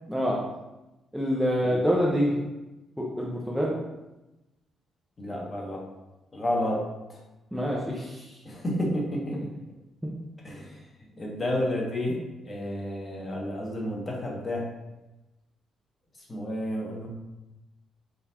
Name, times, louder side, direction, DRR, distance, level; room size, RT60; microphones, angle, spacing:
voice 1, 1.1-2.3 3.0-3.7 7.5-8.2, equal, ahead, -5 dB, 0.6 m, -26 dB
voice 2, 5.2-5.8 6.3-6.8 7.1-7.2 8.4-9.4 10.4-10.8 11.2-12.2 12.4-14.6 16.3-17.1, left 1 dB, 25° left, -2 dB, 1.1 m, -30 dB
4.8 x 3.8 x 2.8 m, 1.0 s
cardioid pair, 145°, 0 cm